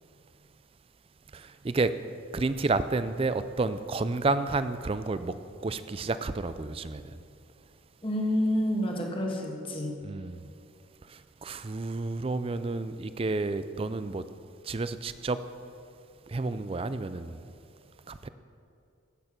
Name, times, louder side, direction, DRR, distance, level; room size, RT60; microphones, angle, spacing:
voice 1, 1.3-1.9 2.3-5.3 5.6-7.0 10.0-10.4 11.4-14.2 14.7-15.4 16.3-17.4 18.1-18.3, right 3 dB, 30° right, 12 dB, 0.4 m, -30 dB
voice 2, 8.0-9.9, equal, 25° left, 0 dB, 1.5 m, -28 dB
15.0 x 6.8 x 5.9 m, 2.6 s
head